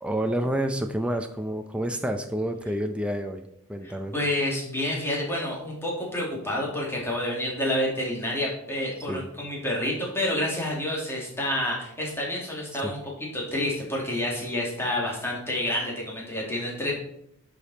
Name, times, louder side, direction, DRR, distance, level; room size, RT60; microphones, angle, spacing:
voice 1, 0.0-3.4 3.7-4.1 9.1-9.3 12.7-12.9, right 1 dB, 5° right, 5 dB, 0.5 m, -29 dB
voice 2, 3.8-16.9, left 1 dB, 10° left, -3 dB, 2.5 m, -29 dB
10.5 x 5.2 x 4.2 m, 0.74 s
head